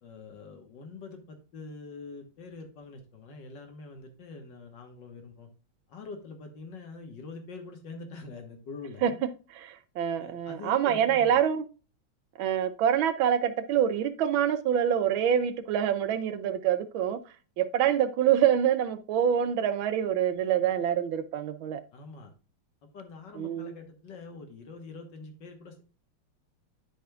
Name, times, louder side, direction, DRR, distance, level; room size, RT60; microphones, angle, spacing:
voice 1, 0.0-5.5 5.9-9.2 10.2-11.4 21.9-22.3 22.8-25.8, left 4 dB, 60° left, 1.9 m, -45 dB
voice 2, 9.5-11.6 12.4-17.2 17.6-21.8 23.3-23.7, right 9 dB, 75° right, 1.4 m, -26 dB
11.5 x 5.1 x 2.3 m
omnidirectional pair, 2.3 m